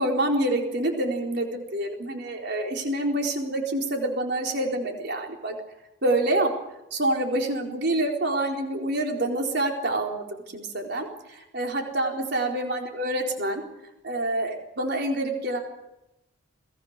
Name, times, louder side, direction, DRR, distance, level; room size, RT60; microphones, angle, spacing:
voice 1, 0.0-5.5 6.0-6.5 6.9-10.2 10.5-13.6 14.0-15.6, right 1 dB, 60° right, 1 dB, 4.3 m, -27 dB
28.5 x 20.5 x 6.7 m, 0.93 s
head